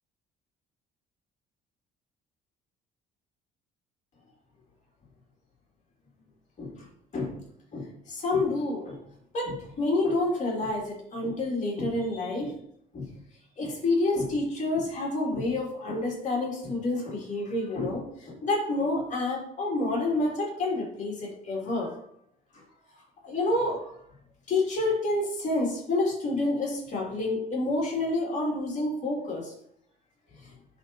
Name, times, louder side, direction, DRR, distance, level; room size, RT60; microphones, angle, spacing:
voice 1, 7.7-9.0 9.3-12.5 12.9-13.1 13.6-21.9 23.2-23.9 24.5-29.5, left 2 dB, 45° left, -2 dB, 2.7 m, -28 dB
10.5 x 4.1 x 2.8 m, 0.71 s
cardioid pair, 110°, 17 cm